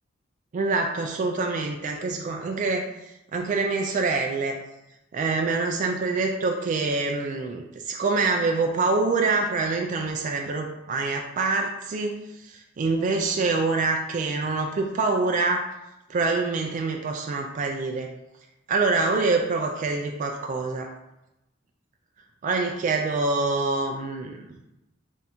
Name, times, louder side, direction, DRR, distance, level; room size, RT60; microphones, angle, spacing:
voice 1, 0.5-4.6 5.1-15.6 16.1-18.1 18.7-20.9 22.4-24.5, right 3 dB, 40° right, 2 dB, 0.3 m, -25 dB
3.4 x 2.6 x 4.2 m, 0.93 s
head